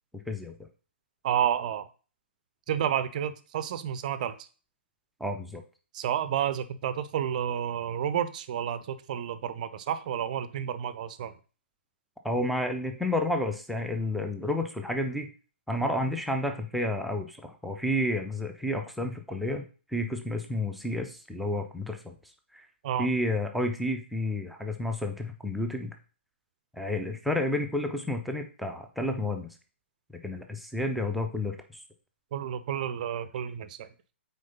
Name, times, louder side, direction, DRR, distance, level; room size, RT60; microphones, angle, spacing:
voice 1, 1.2-1.9 2.7-4.4 5.9-11.3 22.8-23.1 32.3-33.9, right 9 dB, 40° right, 14 dB, 0.6 m, -30 dB
voice 2, 5.2-5.6 12.2-15.3 15.7-19.6 19.9-22.1 22.5-22.7 23.0-25.9 26.7-29.5 30.2-31.8, left 1 dB, ahead, 3 dB, 0.6 m, -30 dB
6.4 x 4.4 x 5.3 m, 0.37 s
figure-of-eight pair, 125°, 7 cm